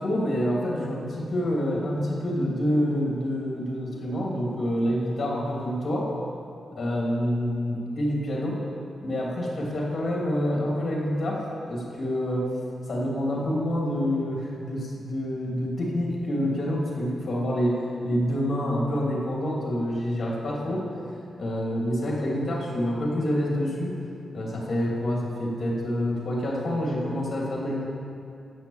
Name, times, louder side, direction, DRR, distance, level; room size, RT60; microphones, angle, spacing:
voice 1, 0.0-6.1 6.7-8.6 9.0-12.5 12.9-20.9 21.4-23.9 24.3-27.9, equal, 45° left, -3 dB, 2.8 m, -27 dB
10.5 x 8.1 x 7.2 m, 2.6 s
wide cardioid pair, 110°, 0 cm